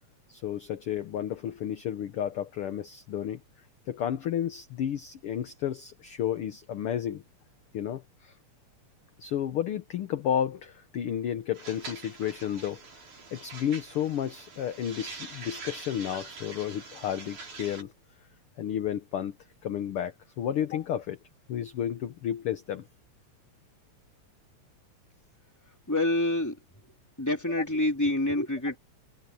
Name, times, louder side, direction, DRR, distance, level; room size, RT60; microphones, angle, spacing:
voice 1, 0.3-3.4 3.9-7.2 7.7-8.3 9.2-12.8 13.3-17.9 18.6-19.3 19.6-21.2 21.5-22.9, left 10 dB, 60° left, 1.7 m, -32 dB
sound 1, 11.5-17.8, right 4 dB, 80° right, 7.1 m, -44 dB
voice 2, 25.9-26.6 27.2-28.8, left 1 dB, 5° left, 3.1 m, -27 dB
omnidirectional pair, 3.4 m